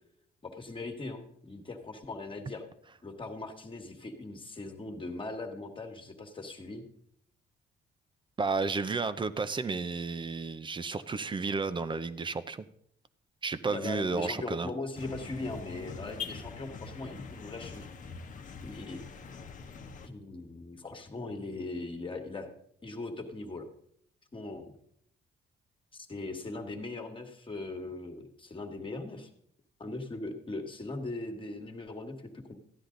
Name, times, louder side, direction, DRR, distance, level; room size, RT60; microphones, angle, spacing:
voice 1, 0.4-2.7 3.0-6.8 13.7-17.9 18.6-19.0 20.0-22.5 22.8-23.7 24.3-24.7 25.9-29.3 29.8-32.5, left 2 dB, 25° left, 4 dB, 1.6 m, -40 dB
voice 2, 8.4-12.7 13.4-14.7, right 4 dB, 25° right, 13 dB, 0.6 m, -32 dB
sound 1, 14.9-20.1, left 5 dB, 45° left, 1.0 m, -43 dB
13.5 x 9.9 x 3.9 m, 0.69 s
cardioid pair, 105°, 19 cm